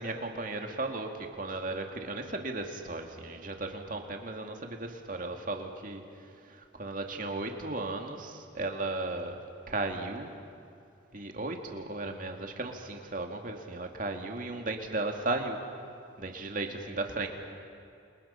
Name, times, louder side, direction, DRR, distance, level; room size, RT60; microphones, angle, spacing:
voice 1, 0.0-6.0 6.5-9.4 9.7-10.4 11.1-15.6 16.2-17.3, right 2 dB, 40° right, 3 dB, 2.3 m, -35 dB
29.0 x 28.5 x 5.8 m, 2.5 s
head